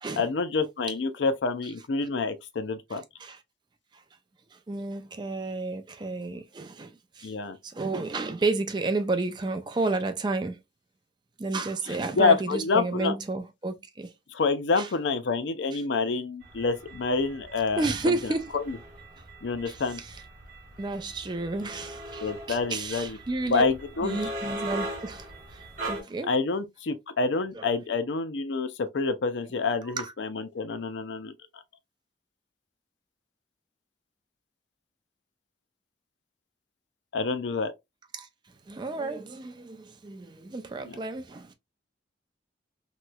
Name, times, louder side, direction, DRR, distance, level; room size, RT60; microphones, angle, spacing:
voice 1, 0.2-3.0 7.2-7.6 12.2-13.2 14.3-17.8 18.5-18.8 19.4-20.0 22.2-23.2 23.5-24.2 26.3-31.3 37.1-37.7 40.9-41.0, left 4 dB, 75° left, 0.5 m, -27 dB
voice 2, 2.9-3.4 4.5-7.3 7.6-10.6 11.4-14.1 14.8-14.9 15.7-15.8 17.8-18.5 19.7-20.2 20.8-23.7 24.0-26.3 27.5-27.7 29.8-30.1 38.1-38.3 38.7-41.5, right 3 dB, 25° right, 0.4 m, -32 dB
sound 1, 16.4-26.0, right 1 dB, 45° right, 1.1 m, -40 dB
3.0 x 3.0 x 2.2 m
head